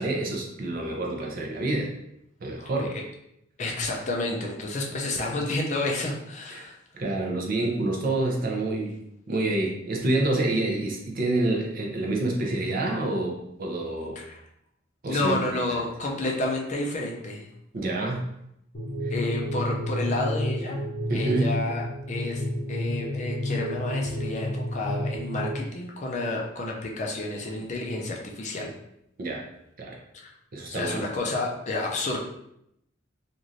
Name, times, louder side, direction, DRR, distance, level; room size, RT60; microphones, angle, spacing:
voice 1, 0.0-1.9 2.4-2.9 6.5-6.6 6.9-8.9 9.3-14.2 15.0-15.6 17.7-18.3 19.0-19.1 21.1-21.5 29.2-29.5 29.8-30.0 30.5-31.0, right 2 dB, 45° right, 0 dB, 0.5 m, -27 dB
voice 2, 3.6-6.8 14.2-14.4 15.1-17.5 19.1-20.8 21.1-28.7 30.7-32.2, left 2 dB, 35° left, 0 dB, 0.4 m, -30 dB
sound 1, 18.7-25.6, equal, 80° left, 0.7 m, -30 dB
3.1 x 2.5 x 2.5 m, 0.78 s
head